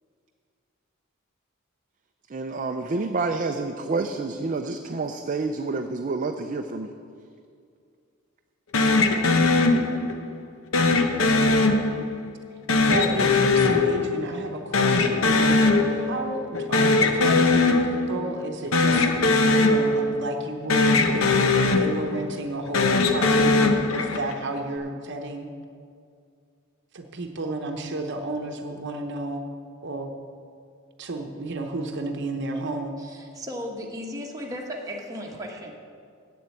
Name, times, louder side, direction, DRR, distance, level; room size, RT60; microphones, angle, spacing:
voice 1, 2.3-6.9, right 3 dB, 40° right, 5 dB, 0.4 m, -28 dB
sound 1, 8.7-10.3 10.7-12.3 12.7-14.5 14.7-16.3 16.5-18.3 18.7-20.4 20.7-22.3 22.7-24.4, left 3 dB, 75° left, 0.8 m, -20 dB
voice 2, 12.8-19.1 19.6-23.5 23.9-25.5 26.9-29.4 29.8-30.1 31.0-33.0, right 2 dB, 60° right, 4 dB, 0.9 m, -32 dB
voice 3, 33.0-35.7, equal, 15° right, -1 dB, 1.3 m, -35 dB
7.9 x 7.4 x 8.3 m, 2.3 s
head